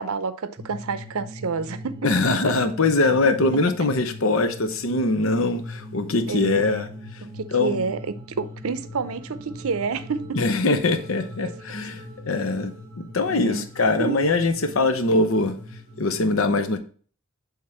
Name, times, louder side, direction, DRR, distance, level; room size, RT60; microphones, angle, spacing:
voice 1, 0.0-2.2 6.3-6.8 7.2-10.6 11.4-11.5 13.3-13.7 14.0-14.2, right 4 dB, 75° right, 0.6 m, -29 dB
sound 1, 0.6-16.2, left 1 dB, 20° right, 1.1 m, -40 dB
voice 2, 2.0-6.9 7.5-7.9 10.3-15.6 16.0-16.8, left 2 dB, 65° left, 0.7 m, -22 dB
7.9 x 3.6 x 4.3 m
head